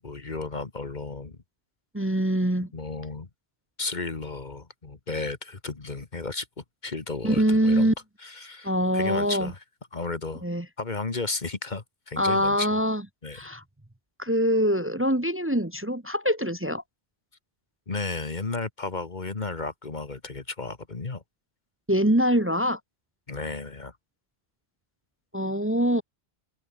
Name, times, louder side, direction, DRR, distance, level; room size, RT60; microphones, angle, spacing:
voice 1, 0.0-1.4 2.7-3.3 3.8-7.9 8.2-9.6 9.9-10.4 10.8-12.7 13.2-13.4 17.9-21.2 23.3-23.9, left 3 dB, 45° left, 1.7 m, -33 dB
voice 2, 1.9-2.7 7.2-7.9 8.6-9.5 10.4-10.6 12.2-13.0 13.3-13.6 14.2-16.8 21.9-22.8 25.3-26.0, equal, 10° right, 1.3 m, -24 dB
open air
omnidirectional pair, 1.1 m